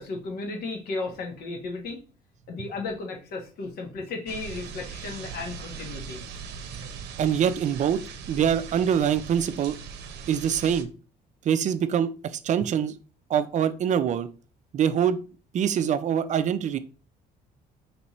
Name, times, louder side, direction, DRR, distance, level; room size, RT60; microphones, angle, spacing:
voice 1, 0.0-2.0 2.5-6.2, left 3 dB, 65° left, 2 dB, 1.3 m, -34 dB
sound 1, 4.3-10.8, right 5 dB, 80° right, 0.7 m, -40 dB
voice 2, 7.2-8.0 8.3-9.8 10.3-10.9 11.4-12.9 13.3-14.3 14.7-15.2 15.5-16.8, right 8 dB, 45° right, 12 dB, 0.4 m, -24 dB
4.2 x 3.3 x 3.0 m, 0.35 s
cardioid pair, 110°, 17 cm